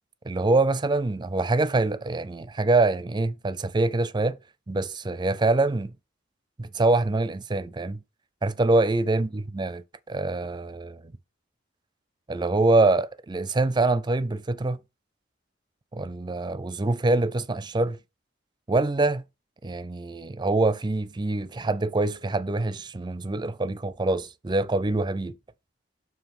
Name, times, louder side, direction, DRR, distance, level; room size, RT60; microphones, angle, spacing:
voice 1, 0.2-4.4 4.7-5.9 6.6-8.0 8.4-9.8 10.1-11.1 12.3-14.8 15.9-18.0 18.7-19.2 19.6-25.3, right 2 dB, 25° right, 0.4 m, -25 dB
7.1 x 3.0 x 5.8 m
head